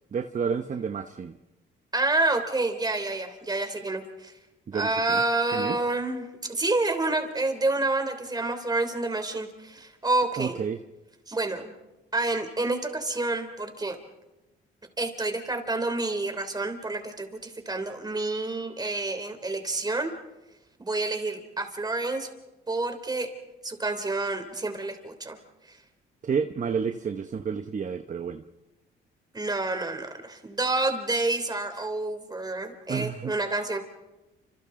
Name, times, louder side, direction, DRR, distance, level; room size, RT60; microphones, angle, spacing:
voice 1, 0.1-1.3 4.7-5.2 5.5-5.8 10.4-10.8 26.2-28.4 32.9-33.3, right 6 dB, 40° right, 7 dB, 1.0 m, -30 dB
voice 2, 1.9-4.3 4.7-10.6 11.3-11.8 12.1-14.0 15.0-20.1 20.8-22.3 22.7-23.3 23.6-25.4 25.7-25.8 29.3-33.8, right 2 dB, 20° right, 6 dB, 3.3 m, -28 dB
29.5 x 26.5 x 3.8 m, 1.0 s
cardioid pair, 90°, 20 cm